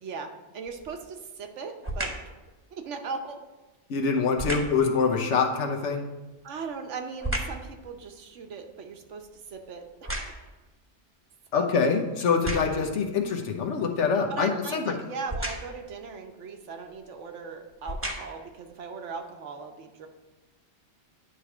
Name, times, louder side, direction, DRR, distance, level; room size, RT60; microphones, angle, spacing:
voice 1, 0.0-2.1 2.7-3.4 6.4-9.9 11.5-11.7 14.3-20.1, right 5 dB, 85° right, 5 dB, 1.2 m, -38 dB
sound 1, 0.7-1.1 1.8-2.3 4.3-4.9 6.3-7.7 8.2-10.7 11.3-11.4 12.2-12.9 15.3-15.9 16.9-17.0 17.7-18.5 19.1-19.2, right 1 dB, 10° right, 1.0 m, -34 dB
voice 2, 3.9-6.0 11.5-14.9, left 5 dB, 85° left, 3 dB, 1.2 m, -25 dB
9.9 x 3.3 x 6.0 m, 1.1 s
omnidirectional pair, 1.2 m